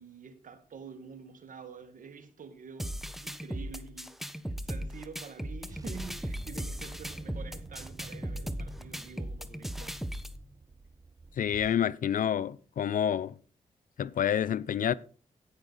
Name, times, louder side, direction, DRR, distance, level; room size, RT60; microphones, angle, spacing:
voice 1, 0.0-9.9, right 5 dB, 70° right, 1.7 m, -48 dB
sound 1, 2.8-10.4, equal, ahead, 1.2 m, -37 dB
sound 2, 3.7-4.3 5.7-11.8, right 3 dB, 25° right, 0.7 m, -48 dB
voice 2, 11.4-13.3 14.0-14.9, left 9 dB, 70° left, 0.6 m, -28 dB
17.0 x 6.4 x 4.0 m
cardioid pair, 50°, 14 cm